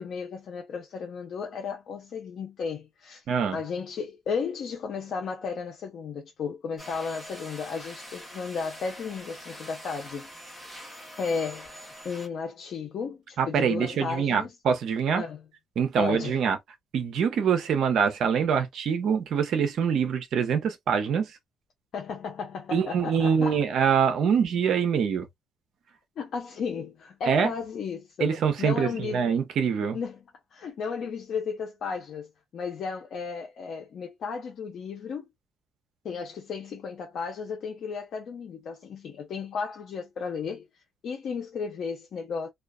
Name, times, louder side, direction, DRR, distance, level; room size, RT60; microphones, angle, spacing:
voice 1, 0.0-3.2 3.5-10.3 11.2-14.5 15.2-15.4 16.0-16.4 21.9-23.6 24.2-24.4 26.2-29.2 29.9-30.2 30.5-35.3 36.0-40.7 41.0-42.5, left 5 dB, 60° left, 0.6 m, -34 dB
voice 2, 3.3-3.6 13.4-15.2 15.8-16.6 16.9-21.4 22.7-25.3 27.3-27.5 28.2-30.0, right 7 dB, 65° right, 0.7 m, -24 dB
sound 1, 6.8-12.3, equal, 5° right, 1.1 m, -44 dB
2.4 x 2.3 x 2.2 m
cardioid pair, 95°, 0 cm